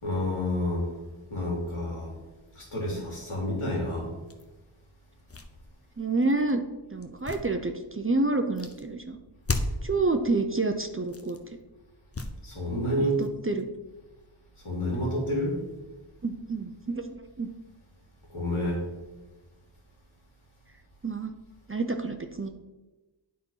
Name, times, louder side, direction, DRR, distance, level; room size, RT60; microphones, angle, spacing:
voice 1, 0.0-0.9 1.3-2.1 2.5-4.1 12.4-13.2 14.6-15.6 18.3-18.8, left 1 dB, 75° left, -3 dB, 2.8 m, -29 dB
Wax drops foley, 4.3-4.4 5.1-6.5 7.0-8.1 8.6-8.8 9.4-10.0 11.0-11.5 12.1-12.6 13.0-14.2, left 2 dB, 30° left, 0.8 m, -35 dB
voice 2, 6.0-9.2 9.8-11.4 13.0-13.7 16.2-17.5 21.0-21.3 21.7-22.5, right 3 dB, 25° right, 6 dB, 0.6 m, -28 dB
9.1 x 4.3 x 5.5 m, 1.1 s
wide cardioid pair, 50°, 49 cm